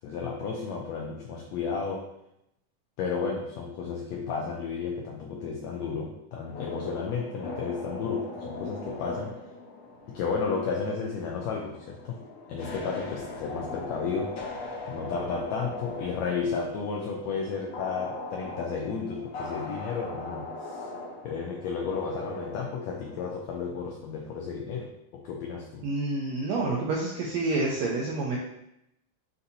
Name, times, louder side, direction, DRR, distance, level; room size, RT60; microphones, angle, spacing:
voice 1, 0.0-2.1 3.0-9.4 10.1-12.2 12.5-14.4 14.9-20.8 21.2-25.9, left 5 dB, 85° left, 0 dB, 1.5 m, -33 dB
sound 1, 6.5-23.4, left 2 dB, 65° left, 1.9 m, -40 dB
voice 2, 25.8-28.4, right 2 dB, 85° right, -2 dB, 1.5 m, -28 dB
6.6 x 2.7 x 2.7 m, 0.82 s
omnidirectional pair, 3.6 m